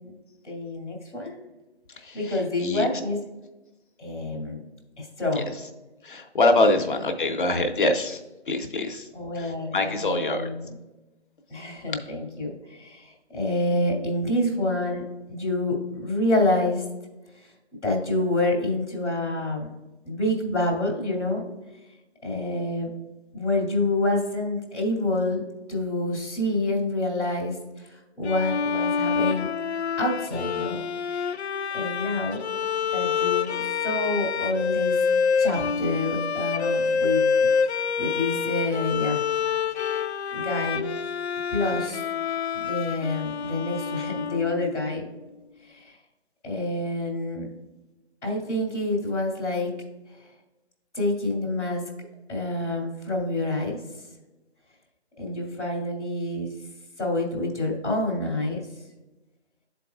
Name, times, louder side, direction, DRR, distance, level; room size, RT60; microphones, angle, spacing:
voice 1, 0.4-1.4 2.1-3.2 4.0-4.6 5.0-5.6 6.6-6.7 9.1-10.8 11.5-15.0 15.3-16.8 17.8-19.7 20.0-21.5 22.2-22.9 23.3-27.5 27.9-29.5 30.0-30.8 31.1-31.3 31.7-32.4 32.9-33.5 33.8-34.9 35.4-37.5 38.0-39.2 40.3-40.8 41.5-42.0 42.5-45.0 45.7-45.9 46.4-47.5 48.2-49.7 50.9-51.8 52.3-53.8 55.2-56.5 57.0-58.7, left 2 dB, ahead, -27 dB, 0.6 m, -27 dB
voice 2, 2.0-2.8 5.4-5.5 6.0-8.2 8.5-9.0 9.4-10.5, left 2 dB, 45° left, 4 dB, 0.8 m, -24 dB
Bowed string instrument, 28.2-44.8, left 6 dB, 70° left, 0.5 m, -27 dB
12.0 x 4.1 x 2.3 m, 1.1 s
figure-of-eight pair, 165°, 34 cm